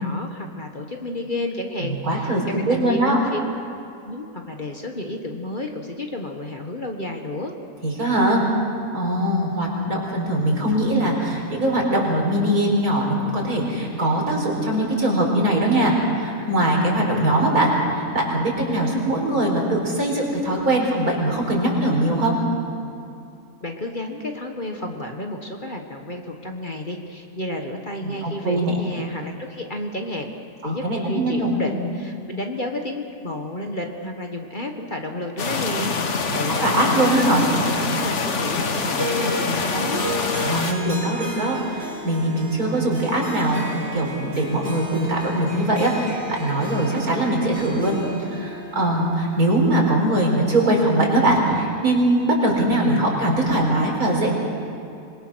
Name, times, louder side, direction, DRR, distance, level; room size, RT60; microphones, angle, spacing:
voice 1, 0.0-2.3 2.7-3.4 4.0-7.5 23.6-30.3 30.6-40.1, left 1 dB, 35° left, 3 dB, 1.7 m, -31 dB
voice 2, 1.8-3.2 7.8-8.5 8.9-22.4 28.0-28.8 30.6-31.7 36.3-37.4 40.4-54.3, right 1 dB, 70° right, -1 dB, 5.0 m, -21 dB
sound 1, 35.4-40.7, left 4 dB, 50° left, 1.5 m, -25 dB
Harp, 38.9-50.2, equal, 45° right, 3.1 m, -34 dB
26.0 x 22.0 x 6.3 m, 2.6 s
omnidirectional pair, 1.6 m